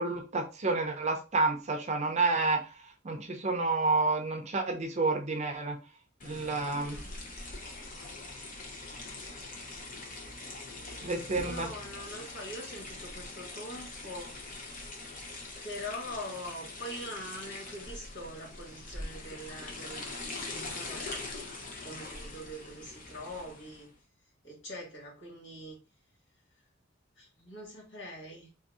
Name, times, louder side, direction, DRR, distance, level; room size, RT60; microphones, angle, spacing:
voice 1, 0.0-2.6 3.0-5.8 6.2-7.0 11.0-11.7, right 3 dB, 35° right, 3 dB, 0.5 m, -29 dB
sound 1, 6.2-23.9, left 2 dB, 45° left, 0.8 m, -43 dB
voice 2, 6.7-7.1 10.8-11.0 11.4-14.3 15.6-21.2 21.8-23.9 24.4-25.8 27.2-28.5, left 1 dB, 70° left, -3 dB, 1.8 m, -43 dB
3.8 x 2.6 x 2.4 m, 0.31 s
head